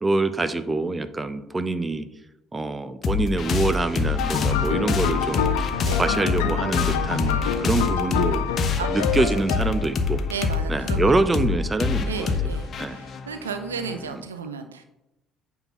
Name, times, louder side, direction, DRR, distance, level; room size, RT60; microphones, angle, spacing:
voice 1, 0.0-2.1 2.5-5.5 5.9-8.4 8.9-10.2 10.7-12.3 12.8-13.0 14.1-14.2, right 2 dB, 20° right, 12 dB, 0.7 m, -25 dB
sound 1, 3.0-14.1, left 5 dB, 45° left, 1.0 m, -26 dB
sound 2, 4.2-10.0, left 8 dB, 75° left, 0.5 m, -27 dB
voice 2, 8.8-9.4 10.3-11.1 12.1-14.8, right 5 dB, 85° right, 8 dB, 0.6 m, -34 dB
9.0 x 3.8 x 5.9 m, 0.94 s
figure-of-eight pair, 55°, 0 cm